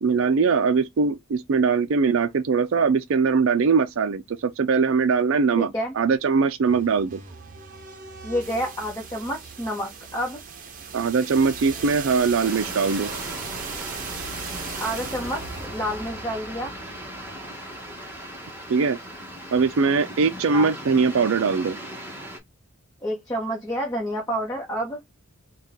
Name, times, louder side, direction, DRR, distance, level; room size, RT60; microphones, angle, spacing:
voice 1, 0.0-7.2 10.9-13.1 18.7-19.0 19.5-21.8, right 5 dB, 60° right, 0.4 m, -21 dB
voice 2, 5.6-5.9 8.2-10.4 14.8-16.7 20.5-20.7 23.0-25.0, equal, 15° left, 1.0 m, -29 dB
sound 1, 6.7-18.5, right 5 dB, 40° right, 0.8 m, -38 dB
sound 2, 12.4-22.4, equal, 10° right, 1.0 m, -38 dB
4.0 x 2.3 x 3.5 m
head